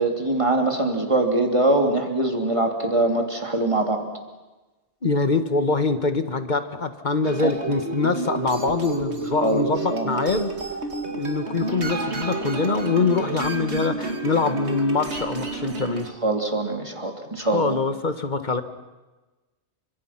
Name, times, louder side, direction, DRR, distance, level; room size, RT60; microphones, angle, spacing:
voice 1, 0.0-4.0 9.4-10.2 16.2-17.8, right 2 dB, 25° right, 3 dB, 3.1 m, -23 dB
voice 2, 5.0-10.5 11.1-16.1 17.4-18.6, left 3 dB, 45° left, 9 dB, 1.7 m, -24 dB
sound 1, 7.2-16.1, right 3 dB, 75° right, 2.5 m, -30 dB
29.5 x 26.0 x 6.0 m, 1.2 s
omnidirectional pair, 1.1 m